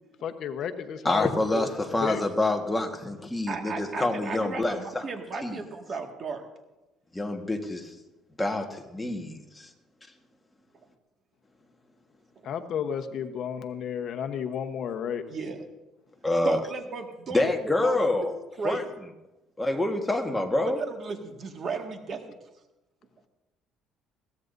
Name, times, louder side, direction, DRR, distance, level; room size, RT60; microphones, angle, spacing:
voice 1, 0.2-1.3 1.5-1.6 2.0-2.2 12.4-15.2, left 8 dB, 55° left, 6 dB, 1.0 m, -32 dB
voice 2, 1.0-5.1 5.4-5.6 7.1-7.9 8.4-9.7 16.2-16.6 17.3-18.4 18.6-18.8 19.6-20.8, left 2 dB, 10° left, 3 dB, 1.5 m, -27 dB
voice 3, 3.5-6.4 15.3-15.7 16.4-18.1 18.6-18.8 20.6-22.4, right 4 dB, 40° right, 3 dB, 1.9 m, -35 dB
21.5 x 16.5 x 2.7 m, 1.0 s
cardioid pair, 125°, 0 cm